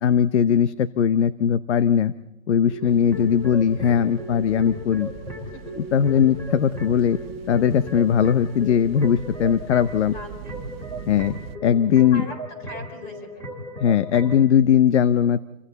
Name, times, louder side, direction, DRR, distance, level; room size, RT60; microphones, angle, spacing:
voice 1, 0.0-2.1 2.5-5.1 5.8-7.2 7.5-10.1 11.1-11.4 11.6-12.2 13.8-15.4, left 8 dB, 55° left, 14 dB, 0.9 m, -19 dB
sound 1, 2.7-14.4, left 1 dB, 5° left, 3.9 m, -36 dB
voice 2, 2.8-3.3 5.5-5.8 10.1-10.6 12.1-13.4, left 1 dB, 25° left, 7 dB, 4.0 m, -41 dB
sound 2, 2.9-11.6, right 10 dB, 45° right, 1.2 m, -42 dB
29.0 x 24.0 x 4.1 m, 0.95 s
hypercardioid pair, 160°, 40 cm